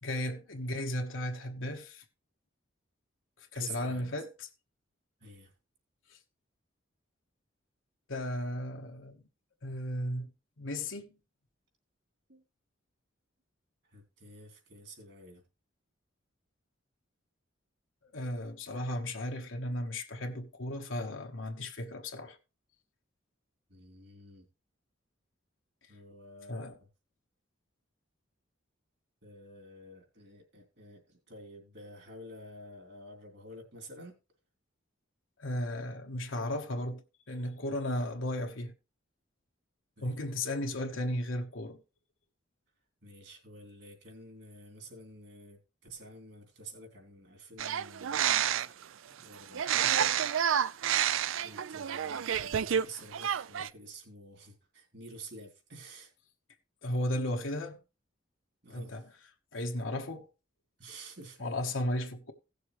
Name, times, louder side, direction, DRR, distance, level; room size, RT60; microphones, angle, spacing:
voice 1, 0.0-2.0 3.5-4.5 6.1-6.2 8.1-9.2 9.6-11.2 18.1-22.4 26.5-26.8 35.4-38.7 40.0-41.8 56.8-57.8 58.7-59.0 59.5-60.3 61.4-62.3, left 1 dB, 80° left, 1.2 m, -35 dB
voice 2, 3.5-4.2 5.2-5.5 12.3-12.4 13.8-15.4 23.7-24.5 25.9-26.8 29.2-34.2 40.0-40.3 43.0-48.8 49.2-50.3 51.4-56.1 58.6-59.1 60.8-61.4, right 1 dB, 60° right, 3.3 m, -50 dB
sound 1, 47.6-48.8 49.5-52.9 53.1-53.7, right 9 dB, 85° right, 0.4 m, -29 dB
17.0 x 6.8 x 3.2 m
head